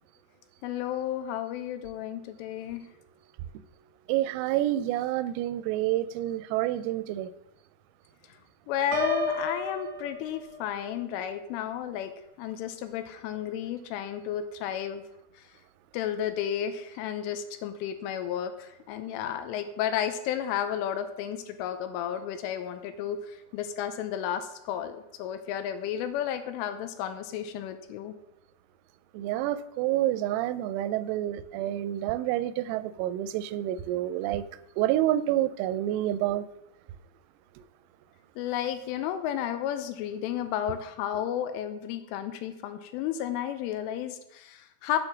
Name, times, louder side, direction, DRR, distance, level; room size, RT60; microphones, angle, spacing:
voice 1, 0.6-2.8 8.7-12.1 12.4-15.0 15.9-28.1 38.4-45.0, left 10 dB, 80° left, 3.1 m, -32 dB
voice 2, 4.1-7.3 29.1-34.4 34.8-36.5, right 13 dB, 90° right, 3.3 m, -28 dB
Piano, 8.9-10.8, left 1 dB, 65° right, 2.3 m, -32 dB
8.8 x 8.7 x 6.0 m
omnidirectional pair, 6.0 m